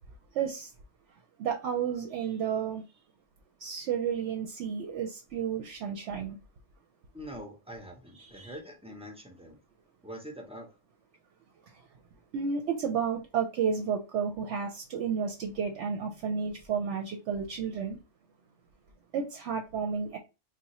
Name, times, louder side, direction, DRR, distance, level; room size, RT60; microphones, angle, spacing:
voice 1, 0.3-0.7 1.4-2.8 3.6-6.4 8.2-8.5 12.3-18.0 19.1-20.2, right 7 dB, 70° right, 0.8 m, -32 dB
voice 2, 7.1-9.6 10.0-10.7, equal, 10° right, 0.3 m, -44 dB
2.7 x 2.2 x 4.1 m
omnidirectional pair, 1.3 m